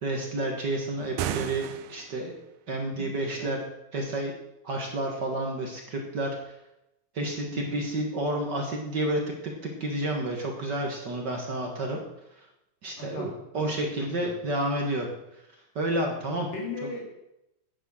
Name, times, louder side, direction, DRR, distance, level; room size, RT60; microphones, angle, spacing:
voice 1, 0.0-2.3 2.7-3.6 3.9-4.3 4.6-6.4 7.1-9.2 9.6-12.0 12.8-15.1 15.7-16.5 16.8-16.9, right 1 dB, 50° right, 1 dB, 1.3 m, -30 dB
sound 1, 1.0-2.3, right 10 dB, 80° right, 2.2 m, -34 dB
voice 2, 7.5-7.8 13.0-13.3 13.6-13.8 14.2-14.3 16.5-17.0, left 3 dB, 65° left, 0 dB, 4.3 m, -37 dB
9.7 x 9.4 x 6.3 m, 0.87 s
omnidirectional pair, 4.1 m